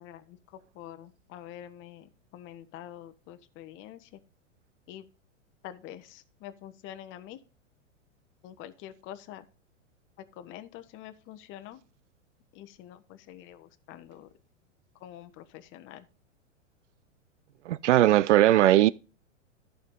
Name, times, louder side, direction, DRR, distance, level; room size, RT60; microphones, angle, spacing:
voice 1, 0.0-4.2 4.9-5.1 5.6-7.4 8.4-9.4 10.2-11.8 12.5-14.3 14.9-16.1, left 11 dB, 30° left, 1.0 m, -46 dB
voice 2, 17.7-18.9, right 14 dB, 70° right, 0.5 m, -19 dB
14.0 x 4.8 x 3.7 m
hypercardioid pair, 105°, 38 cm